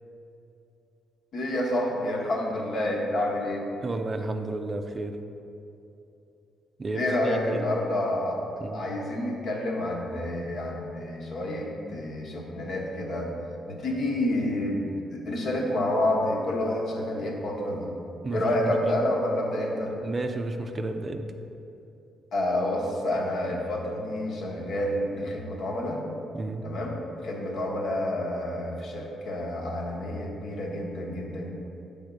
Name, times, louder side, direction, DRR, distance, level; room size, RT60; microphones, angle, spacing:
voice 1, 1.3-3.7 6.9-8.4 8.7-13.3 13.7-18.0 18.3-20.0 22.3-26.0 26.6-31.5, left 1 dB, 65° left, -1 dB, 1.1 m, -29 dB
voice 2, 3.8-5.2 6.8-7.6 8.6-8.8 18.2-19.0 20.0-21.3 26.3-26.6, right 2 dB, 35° right, 6 dB, 0.4 m, -32 dB
6.4 x 3.5 x 5.2 m, 2.8 s
cardioid pair, 90°, 0 cm